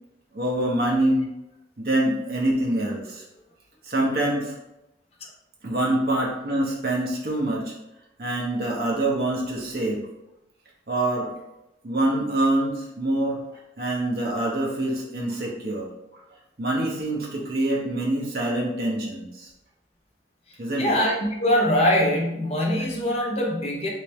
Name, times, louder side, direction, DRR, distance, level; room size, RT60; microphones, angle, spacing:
voice 1, 0.3-1.3 1.8-3.2 3.8-4.5 5.6-7.7 8.2-10.0 10.9-11.3 11.8-13.4 13.8-15.9 16.6-19.5 20.6-21.0, right 1 dB, 55° right, -4 dB, 0.8 m, -25 dB
voice 2, 20.8-23.9, equal, 35° left, -1 dB, 0.7 m, -22 dB
3.3 x 3.2 x 3.1 m, 0.89 s
head